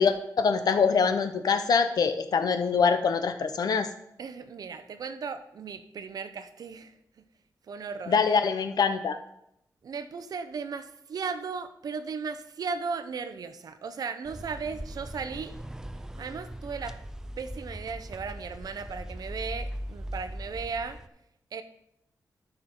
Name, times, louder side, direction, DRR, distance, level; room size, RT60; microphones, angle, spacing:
voice 1, 0.0-3.9 8.1-9.2, left 5 dB, 70° left, 9 dB, 0.7 m, -24 dB
voice 2, 4.2-6.9 7.7-8.1 9.8-15.5 16.2-17.0 17.4-21.0 21.5-21.6, right 5 dB, 65° right, 10 dB, 0.7 m, -36 dB
sound 1, 14.2-21.1, equal, 10° right, 0.4 m, -40 dB
13.0 x 5.8 x 3.8 m, 0.78 s
wide cardioid pair, 160°, 7 cm